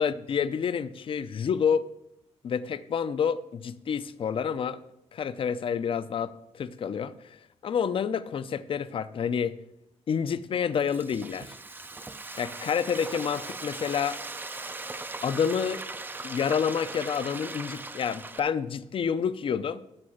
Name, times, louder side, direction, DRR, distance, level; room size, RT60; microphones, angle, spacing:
voice 1, 0.0-1.9 2.4-4.8 5.1-9.6 10.1-11.5 12.4-14.2 15.2-15.8 16.2-19.8, left 7 dB, 45° left, 14 dB, 0.6 m, -29 dB
Frying (food), 10.5-18.4, right 3 dB, 15° right, 0.5 m, -39 dB
13.0 x 5.5 x 6.4 m, 0.82 s
cardioid pair, 130°, 12 cm